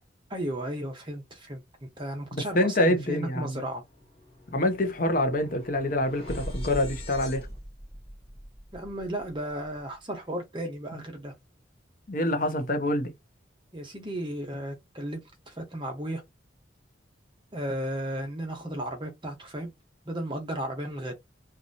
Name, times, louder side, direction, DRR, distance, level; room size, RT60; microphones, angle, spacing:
voice 1, 0.3-3.8 8.7-11.3 13.7-16.2 17.5-19.7 20.1-21.1, right 1 dB, 25° right, 1.2 m, -34 dB
voice 2, 2.3-3.6 4.5-7.5 12.1-13.1, left 1 dB, 45° left, 0.7 m, -26 dB
sound 1, 3.6-9.8, equal, 30° left, 1.5 m, -41 dB
3.7 x 2.8 x 2.8 m
head